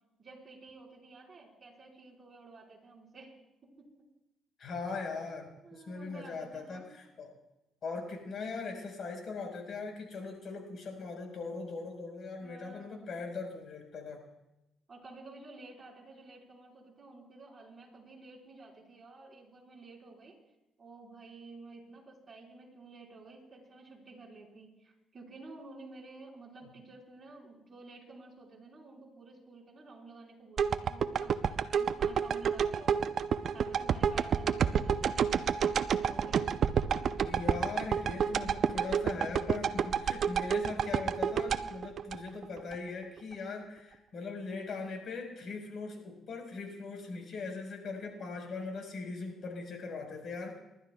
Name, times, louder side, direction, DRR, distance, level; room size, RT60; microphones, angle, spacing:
voice 1, 0.2-3.3 3.6-3.9 5.6-6.9 12.4-13.1 14.9-20.4 20.8-32.9 33.5-36.4, right 3 dB, 35° right, -3 dB, 4.4 m, -52 dB
voice 2, 4.6-7.3 7.8-14.2 37.2-50.6, left 4 dB, 60° left, 2 dB, 4.4 m, -40 dB
sound 1, 30.6-42.8 43.2-43.3, right 7 dB, 60° right, 0.5 m, -29 dB
29.5 x 12.0 x 2.3 m, 0.93 s
cardioid pair, 90°, 0 cm